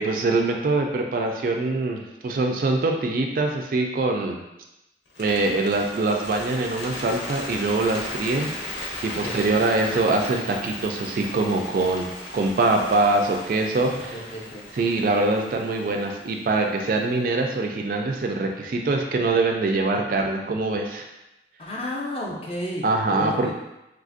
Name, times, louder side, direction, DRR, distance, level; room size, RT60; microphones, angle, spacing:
voice 1, 0.0-4.4 5.2-12.1 12.3-14.2 14.7-21.0 22.8-23.5, right 2 dB, 50° right, 2 dB, 0.3 m, -24 dB
Bird, 5.1-17.3, left 1 dB, 85° left, 0.7 m, -37 dB
voice 2, 9.2-9.7 14.1-14.6 21.6-23.5, left 1 dB, 35° left, -2 dB, 0.5 m, -32 dB
3.3 x 2.4 x 2.5 m, 0.93 s
head